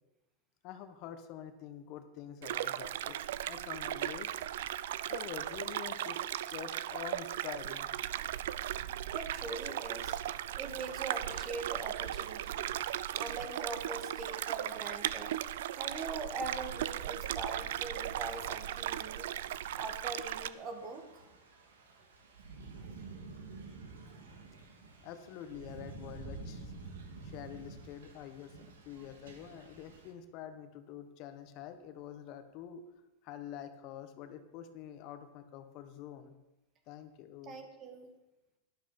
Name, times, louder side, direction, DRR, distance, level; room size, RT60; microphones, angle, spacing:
voice 1, 0.6-4.5 5.0-7.9 25.0-26.7 27.2-28.5 28.8-32.8 33.2-36.3 36.9-37.6, left 9 dB, 50° left, 9 dB, 1.2 m, -46 dB
sound 1, 2.4-20.5, right 12 dB, 75° right, 0.5 m, -37 dB
voice 2, 9.1-10.2 10.6-12.8 13.1-15.4 15.7-19.3 19.8-21.1 37.4-38.1, right 3 dB, 35° right, 6 dB, 2.2 m, -42 dB
Thunder / Rain, 16.5-30.1, right 3 dB, 90° right, 2.4 m, -51 dB
12.0 x 11.5 x 5.2 m, 0.96 s
hypercardioid pair, 125°, 0 cm